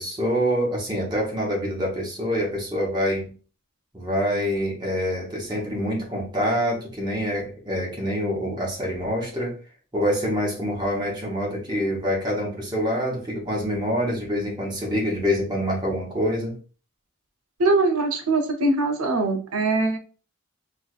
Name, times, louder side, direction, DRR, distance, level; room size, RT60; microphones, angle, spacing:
voice 1, 0.0-3.3 3.9-9.5 9.9-16.6, equal, 20° right, -3 dB, 0.9 m, -26 dB
voice 2, 17.6-20.0, right 2 dB, 85° right, 5 dB, 0.7 m, -22 dB
4.4 x 2.4 x 2.4 m, 0.38 s
head